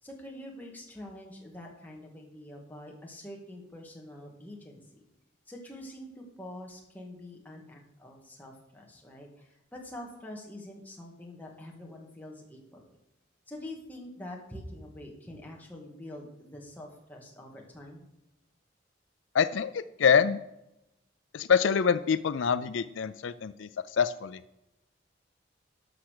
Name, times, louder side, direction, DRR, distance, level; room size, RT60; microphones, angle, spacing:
voice 1, 0.0-5.0 5.5-12.8 13.5-18.1, left 1 dB, 10° left, -1 dB, 2.0 m, -45 dB
voice 2, 19.3-20.4 21.3-24.4, left 6 dB, 75° left, 14 dB, 0.4 m, -26 dB
12.5 x 5.9 x 6.6 m, 0.87 s
head